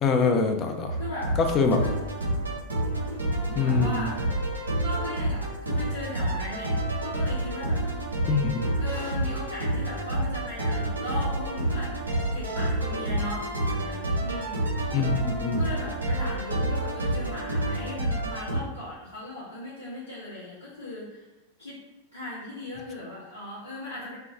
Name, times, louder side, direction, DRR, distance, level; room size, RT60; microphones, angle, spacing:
voice 1, 0.0-1.0 1.4-1.8 3.5-4.1 8.3-8.6 14.9-15.6, left 5 dB, 30° left, 5 dB, 0.3 m, -24 dB
sound 1, 0.9-18.6, right 1 dB, 80° right, 0.7 m, -28 dB
voice 2, 1.0-1.3 1.8-2.0 3.6-4.2 4.8-8.0 8.8-11.9 12.3-14.9 15.5-21.3 21.6-21.8 22.1-24.1, left 1 dB, 80° left, -11 dB, 1.0 m, -38 dB
2.3 x 2.2 x 3.6 m, 1.1 s
figure-of-eight pair, 90°, 0 cm